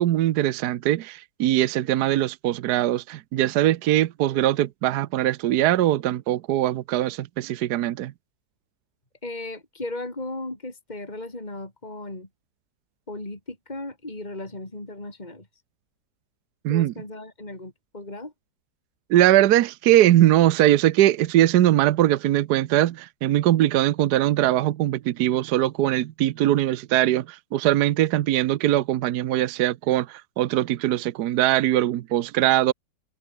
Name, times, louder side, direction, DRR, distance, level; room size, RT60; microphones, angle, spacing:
voice 1, 0.0-8.1 16.6-16.9 19.1-32.7, right 13 dB, 70° right, 1.2 m, -21 dB
voice 2, 9.2-12.3 13.1-15.5 16.7-18.3, left 2 dB, 25° left, 4.4 m, -36 dB
omnidirectional pair, 1.9 m